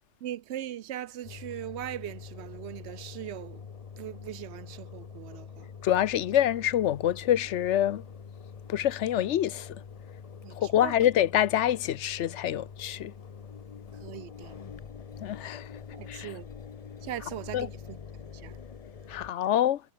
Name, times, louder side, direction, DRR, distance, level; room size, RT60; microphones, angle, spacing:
voice 1, 0.2-3.7 4.0-5.7 10.4-10.9 14.0-14.6 15.9-16.5 17.0-18.6, right 12 dB, 70° right, 0.9 m, -40 dB
Engine, 1.2-19.3, left 6 dB, 40° left, 0.7 m, -45 dB
voice 2, 5.8-8.0 8.7-9.8 10.6-13.1 15.2-15.7 16.1-16.3 17.5-17.7 19.1-19.8, left 11 dB, 80° left, 1.0 m, -26 dB
omnidirectional pair, 1.2 m